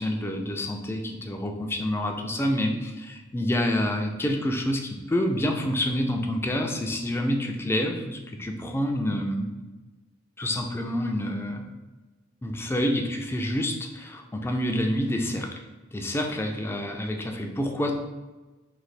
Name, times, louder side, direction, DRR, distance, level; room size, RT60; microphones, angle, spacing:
voice 1, 0.0-9.6 10.4-11.7 12.4-15.5 15.9-17.9, left 1 dB, 10° left, 3 dB, 0.4 m, -28 dB
3.2 x 2.7 x 4.0 m, 1.2 s
head